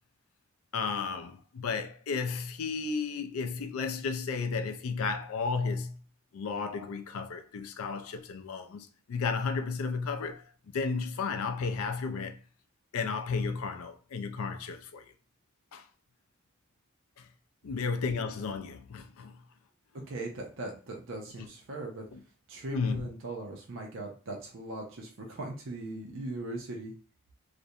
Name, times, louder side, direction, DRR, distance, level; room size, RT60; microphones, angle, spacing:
voice 1, 0.7-6.0 6.3-12.4 12.9-15.0 15.7-15.8 17.2-17.3 17.6-19.4 22.1-22.2 22.7-23.1, left 4 dB, 80° left, 0.4 m, -33 dB
voice 2, 20.1-22.0 22.5-26.9, right 2 dB, 60° right, 0.5 m, -39 dB
2.5 x 2.1 x 2.7 m
head